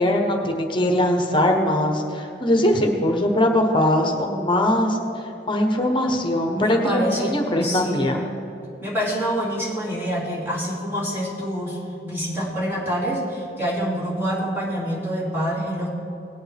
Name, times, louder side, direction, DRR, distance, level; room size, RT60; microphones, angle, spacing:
voice 1, 0.0-5.0 5.5-8.2, left 1 dB, 30° left, 3 dB, 1.1 m, -21 dB
voice 2, 6.5-7.3 7.6-8.1 8.8-11.8 12.0-15.9, equal, 15° right, -7 dB, 2.9 m, -26 dB
18.5 x 8.8 x 3.5 m, 2.8 s
head